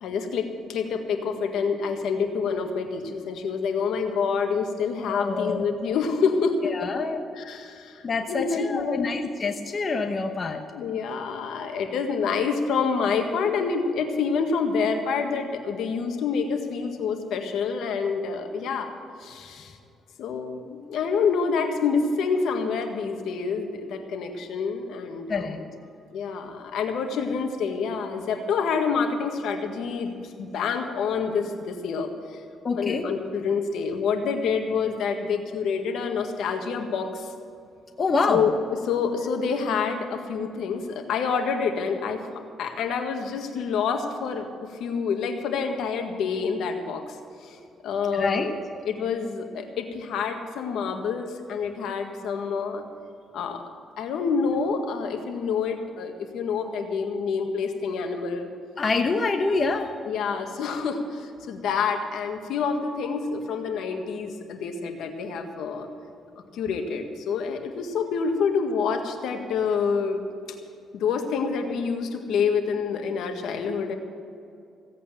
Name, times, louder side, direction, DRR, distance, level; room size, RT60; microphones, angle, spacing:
voice 1, 0.0-9.1 10.7-18.9 19.2-19.7 20.2-25.7 26.1-32.4 32.7-37.3 38.3-38.5 38.9-42.2 42.6-44.5 44.8-48.5 48.8-52.8 53.3-53.6 54.0-58.5 60.0-65.9 66.5-70.2 70.9-73.9, left 5 dB, 80° left, 5 dB, 1.7 m, -27 dB
voice 2, 5.1-5.7 6.6-7.2 8.0-10.6 25.3-25.6 32.6-33.0 38.0-38.4 48.1-48.5 58.8-59.9, left 4 dB, 40° left, 5 dB, 1.0 m, -26 dB
16.5 x 8.4 x 7.5 m, 2.5 s
cardioid pair, 90°, 0 cm